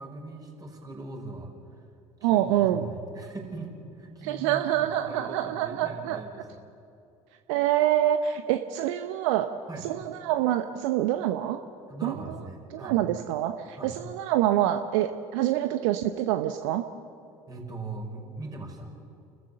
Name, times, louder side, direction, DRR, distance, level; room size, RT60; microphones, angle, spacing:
voice 1, 0.0-1.8 2.2-6.6 9.7-9.9 11.9-13.0 13.8-13.9 17.5-18.9, right 2 dB, 20° right, 0 dB, 5.7 m, -40 dB
voice 2, 2.2-2.9 4.2-6.2 7.5-9.5 9.8-11.6 12.0-12.1 12.7-16.8, right 12 dB, 65° right, 8 dB, 0.8 m, -26 dB
30.0 x 14.0 x 6.9 m, 2.6 s
figure-of-eight pair, 65°, 17 cm